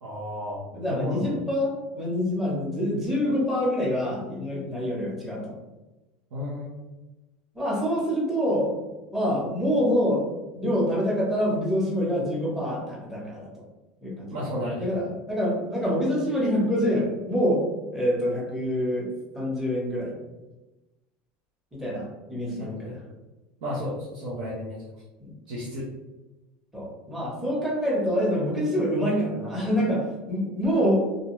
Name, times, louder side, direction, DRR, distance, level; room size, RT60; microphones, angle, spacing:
voice 1, 0.0-1.3 6.3-6.8 14.3-14.9 22.5-23.0 23.6-24.8 25.5-25.9, left 1 dB, 80° right, -7 dB, 0.7 m, -33 dB
voice 2, 0.7-5.5 7.5-8.8 9.1-13.5 14.0-14.5 14.8-17.6 17.9-19.1 19.3-20.1 21.8-22.8 25.2-25.3 26.7-31.1, equal, 5° right, -5 dB, 0.8 m, -26 dB
2.5 x 2.1 x 2.9 m, 1.1 s
supercardioid pair, 150°, 5 cm